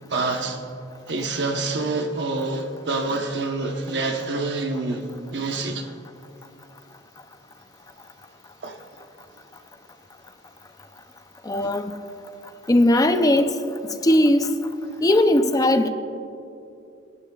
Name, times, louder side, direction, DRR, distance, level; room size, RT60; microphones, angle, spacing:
voice 1, 0.1-0.6 1.1-5.9 8.6-8.8 11.6-11.7, right 3 dB, 60° right, 3 dB, 1.0 m, -27 dB
voice 2, 11.5-12.0 12.7-13.6 14.0-14.5 15.0-15.9, left 1 dB, 20° left, 8 dB, 0.5 m, -18 dB
28.0 x 12.0 x 2.4 m, 2.7 s
head